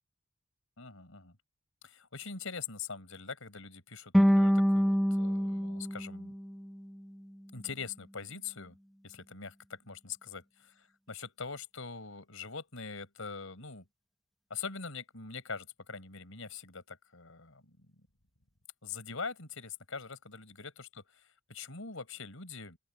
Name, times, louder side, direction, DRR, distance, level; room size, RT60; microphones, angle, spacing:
voice 1, 0.8-1.4 1.8-6.3 7.5-8.7 9.0-10.4 10.7-13.8 14.5-17.8 18.8-21.2 21.5-22.8, left 5 dB, 80° left, 4.7 m, -43 dB
sound 1, 4.1-7.3, equal, ahead, 0.8 m, -27 dB
open air
head